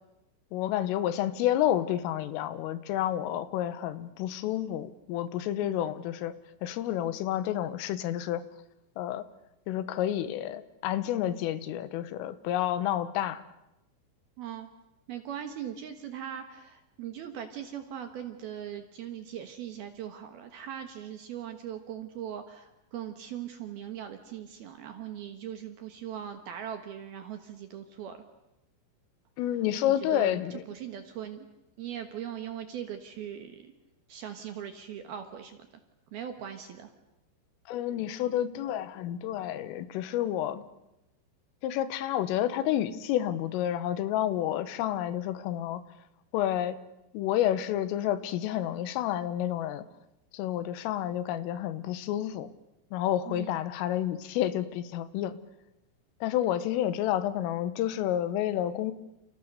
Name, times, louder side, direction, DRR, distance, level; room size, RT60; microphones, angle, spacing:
voice 1, 0.5-6.4 6.6-8.4 9.0-9.3 9.7-13.4 29.4-30.6 37.7-40.7 41.6-45.8 46.3-46.8 47.1-49.9 50.3-52.5 52.9-55.4 56.2-58.9, left 12 dB, 80° left, 13 dB, 3.7 m, -30 dB
voice 2, 14.4-14.7 15.1-28.2 30.0-30.4 30.7-31.5 31.8-33.7 34.1-35.6 36.1-36.9 53.3-53.5, right 9 dB, 65° right, 7 dB, 2.6 m, -40 dB
29.5 x 29.0 x 6.7 m, 0.92 s
omnidirectional pair, 5.9 m